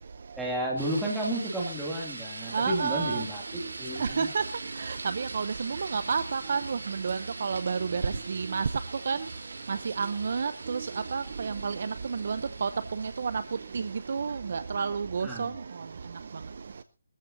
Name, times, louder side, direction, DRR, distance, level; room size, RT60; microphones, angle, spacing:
voice 1, 0.4-4.3 15.2-15.5, right 1 dB, ahead, -4 dB, 2.4 m, -32 dB
sound 1, 0.8-14.8, right 3 dB, 70° right, 5.1 m, -43 dB
voice 2, 2.5-3.2 4.0-4.4 4.8-8.6 9.1-9.2 9.7-10.9 11.1-11.7 12.1-12.7 13.0-13.3 13.7-13.8 14.1-15.5, right 5 dB, 40° right, 14 dB, 0.6 m, -30 dB
22.0 x 14.0 x 2.6 m, 0.29 s
hypercardioid pair, 175°, 0 cm